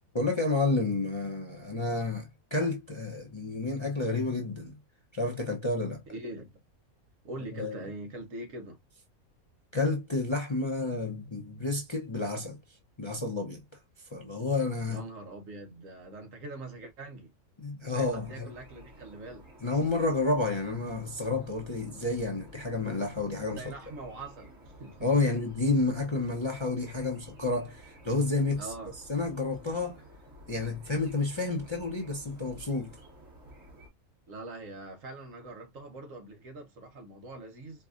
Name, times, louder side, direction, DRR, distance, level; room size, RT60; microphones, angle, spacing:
voice 1, 0.1-4.8 5.1-6.0 7.5-7.8 9.7-12.6 13.0-13.6 14.1-15.0 17.6-18.5 19.6-23.6 25.0-28.7 29.1-30.0 30.5-32.9, left 3 dB, 25° left, 0.7 m, -30 dB
voice 2, 6.1-6.6 7.2-8.8 14.9-17.3 17.8-19.5 23.5-25.3 28.6-28.9 34.3-37.9, right 2 dB, 65° right, 1.4 m, -43 dB
sound 1, 17.9-33.9, equal, 50° right, 2.4 m, -52 dB
4.6 x 2.4 x 2.4 m
omnidirectional pair, 1.5 m